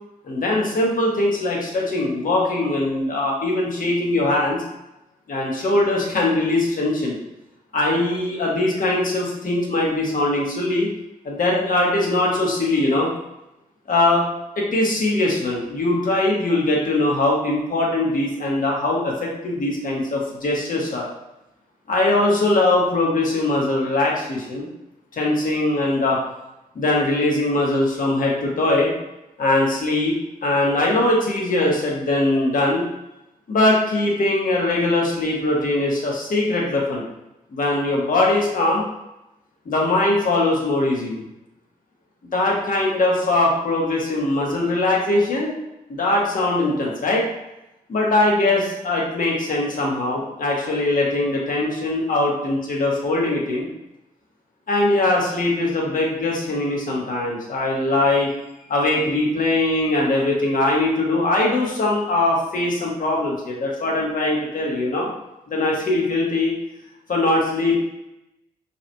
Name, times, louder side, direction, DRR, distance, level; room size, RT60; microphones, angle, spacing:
voice 1, 0.2-4.6 5.3-7.2 7.7-10.9 11.2-13.1 13.9-14.2 14.6-21.1 21.9-24.7 25.1-26.2 26.7-28.9 29.4-30.1 30.4-32.8 33.5-37.0 37.5-38.8 39.7-41.2 42.3-45.5 45.9-47.3 47.9-53.7 54.7-58.3 58.7-65.1 65.5-66.5 67.1-67.7, left 2 dB, 60° left, -2 dB, 1.2 m, -21 dB
5.3 x 3.0 x 2.2 m, 0.90 s
cardioid pair, 65°, 16 cm